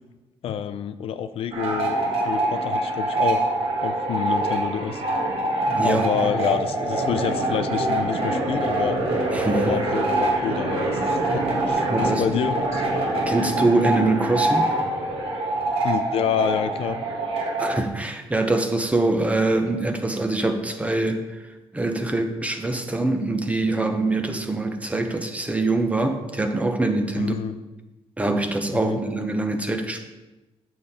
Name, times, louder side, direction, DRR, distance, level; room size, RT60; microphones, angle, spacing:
voice 1, 0.4-3.5 3.8-5.0 5.8-9.0 9.6-12.8 15.8-17.0 27.2-27.6 28.8-29.0, left 8 dB, 70° left, 10 dB, 0.5 m, -28 dB
sound 1, 1.5-17.8, right 2 dB, 65° right, 2.0 m, -24 dB
voice 2, 5.7-6.3 9.3-9.8 11.8-12.2 13.3-14.8 17.6-21.2 21.7-27.4 28.2-30.0, right 2 dB, 15° right, 5 dB, 0.9 m, -24 dB
8.7 x 6.8 x 4.3 m, 1.1 s
cardioid pair, 125°, 10 cm